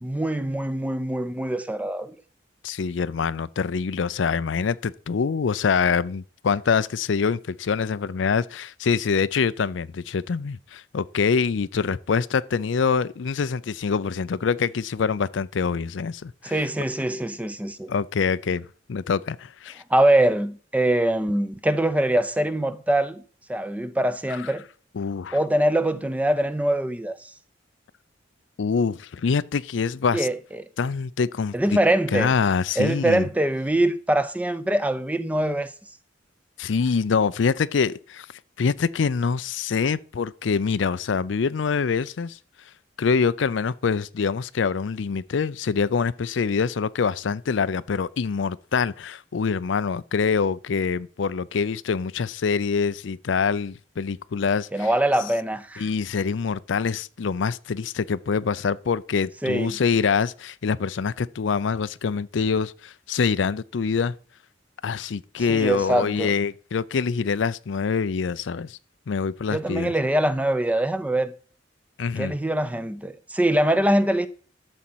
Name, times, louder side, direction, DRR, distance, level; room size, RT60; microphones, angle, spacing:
voice 1, 0.0-2.2 16.4-17.9 19.9-23.2 23.5-24.6 25.3-27.2 30.1-30.7 31.5-32.3 32.8-35.7 54.7-55.9 59.4-59.8 65.4-66.3 69.5-71.3 72.2-74.3, right 1 dB, 10° right, 0.6 m, -23 dB
voice 2, 2.6-16.6 17.9-19.8 24.4-24.5 25.0-25.4 28.6-30.3 30.8-31.8 32.1-33.3 36.6-38.3 38.6-42.4 43.0-54.9 55.8-64.1 64.8-68.8 69.1-69.9 72.0-72.3, left 5 dB, 75° left, 0.5 m, -25 dB
12.5 x 4.2 x 7.7 m
head